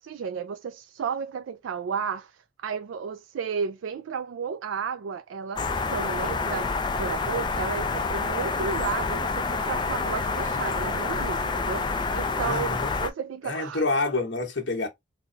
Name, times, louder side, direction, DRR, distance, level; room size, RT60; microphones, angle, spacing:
voice 1, 0.0-6.7 7.0-13.8, right 6 dB, 80° right, 0.3 m, -33 dB
sound 1, 5.6-13.1, left 4 dB, 25° left, 0.4 m, -28 dB
voice 2, 12.4-12.9 13.4-14.9, left 3 dB, 65° left, 1.2 m, -27 dB
3.9 x 2.2 x 3.9 m
head